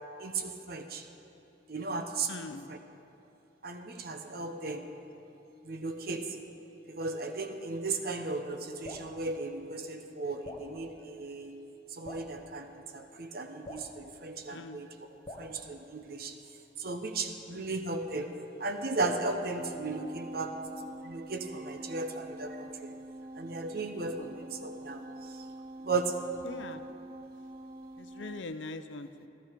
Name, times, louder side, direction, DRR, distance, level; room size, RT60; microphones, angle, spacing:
voice 1, 0.2-1.1 1.7-2.3 2.7-2.8 3.6-4.9 5.6-6.4 6.9-11.6 11.9-14.9 15.4-16.3 16.8-18.3 18.6-20.5 21.0-22.9 23.3-25.4 25.8-26.2, right 3 dB, 55° right, 5 dB, 1.0 m, -36 dB
voice 2, 2.3-2.7 4.3-4.5 14.5-14.8 17.5-17.7 24.1-24.3 26.4-26.8 28.0-29.3, left 3 dB, 80° left, 10 dB, 0.6 m, -42 dB
Drip, 8.8-9.1 10.4-10.7 12.0-12.3 13.6-13.9 15.2-15.5, left 1 dB, 25° left, 1.1 m, -44 dB
sound 1, 19.5-28.4, right 1 dB, 30° right, 0.5 m, -46 dB
14.5 x 13.0 x 5.1 m, 2.8 s
head